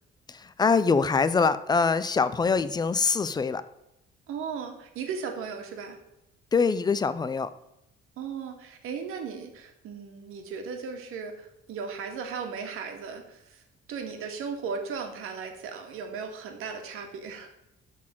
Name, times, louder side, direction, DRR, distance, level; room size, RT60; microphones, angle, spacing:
voice 1, 0.3-3.6 6.5-7.5, left 5 dB, 20° left, 14 dB, 0.4 m, -24 dB
voice 2, 4.3-6.0 8.2-13.6 13.9-17.5, right 5 dB, 85° right, 4 dB, 2.0 m, -36 dB
12.0 x 4.2 x 7.4 m, 0.86 s
cardioid pair, 165°, 21 cm